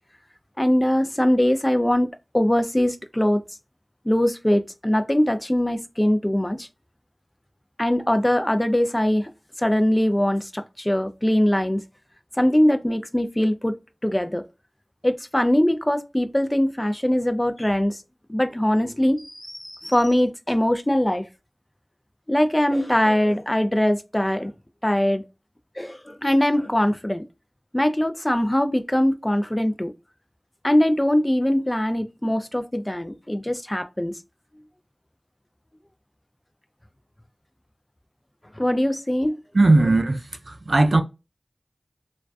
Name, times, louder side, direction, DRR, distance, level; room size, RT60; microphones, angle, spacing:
voice 1, 0.6-3.4 4.1-6.7 7.8-9.3 9.6-11.8 12.4-14.4 15.0-18.0 18.3-21.3 22.3-24.5 24.8-25.2 25.8-27.2 27.7-29.9 30.6-34.2 38.6-39.4, left 1 dB, 20° left, 0.4 m, -22 dB
voice 2, 39.5-41.0, right 2 dB, 75° right, 0.3 m, -18 dB
2.4 x 2.2 x 2.3 m
wide cardioid pair, 45°, 0 cm